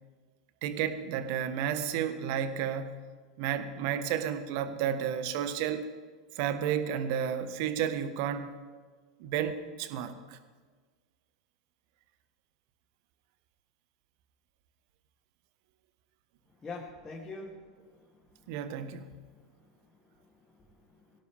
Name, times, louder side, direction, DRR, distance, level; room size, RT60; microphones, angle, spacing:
voice 1, 0.6-3.0 3.4-5.9 6.3-8.6 9.2-10.4 18.5-19.1, right 9 dB, 55° right, 10 dB, 1.4 m, -32 dB
voice 2, 16.6-18.5 19.3-21.2, left 3 dB, 20° left, -4 dB, 2.8 m, -47 dB
23.0 x 17.0 x 3.5 m, 1.5 s
figure-of-eight pair, 90°, 3 cm